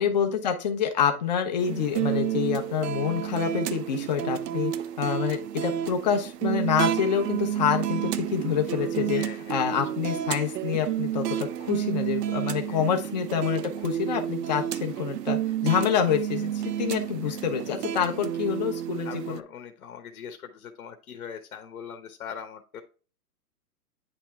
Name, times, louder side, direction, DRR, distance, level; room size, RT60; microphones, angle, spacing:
voice 1, 0.0-4.7 5.0-9.2 9.5-19.4, left 8 dB, 25° left, 5 dB, 0.7 m, -27 dB
sound 1, 1.6-19.4, right 11 dB, 80° right, 0.6 m, -30 dB
voice 2, 9.2-9.8 12.7-12.9 17.2-17.4 19.0-22.8, left 7 dB, 60° left, 5 dB, 1.2 m, -41 dB
9.9 x 3.3 x 3.4 m, 0.34 s
hypercardioid pair, 170°, 48 cm